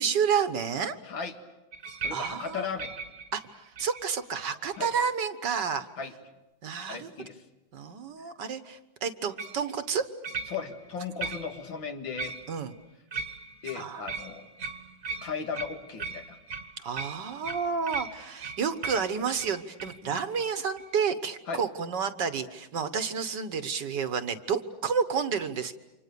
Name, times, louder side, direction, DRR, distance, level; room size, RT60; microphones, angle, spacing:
voice 1, 0.0-1.0 2.1-2.6 3.3-5.9 6.6-7.1 7.7-10.1 12.5-12.7 13.7-14.1 16.8-25.7, right 6 dB, 60° right, 11 dB, 1.7 m, -30 dB
sound 1, 1.7-4.2 4.7-5.1 9.4-9.6 10.2-10.9 11.2-11.7 12.2-12.7 13.1-20.0 20.3-20.5 20.8-20.9, right 4 dB, 45° right, 1.6 m, -39 dB
voice 2, 2.0-2.9 4.8-4.9 6.0-6.1 6.9-7.4 10.5-12.4 13.6-14.5 15.2-16.4 20.1-20.2 21.5-21.6, left 6 dB, 65° left, 6 dB, 2.5 m, -36 dB
29.5 x 26.0 x 6.9 m, 1.0 s
omnidirectional pair, 2.2 m